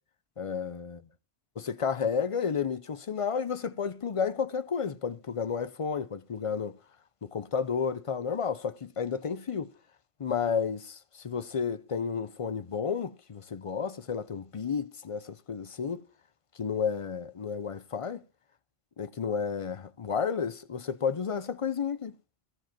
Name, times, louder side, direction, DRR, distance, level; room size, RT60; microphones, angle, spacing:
voice 1, 0.4-1.0 1.6-6.8 7.2-9.7 10.2-11.0 11.2-16.0 16.6-18.2 19.0-22.1, left 6 dB, 40° left, 0.5 m, -31 dB
14.5 x 5.1 x 5.9 m
omnidirectional pair, 1.1 m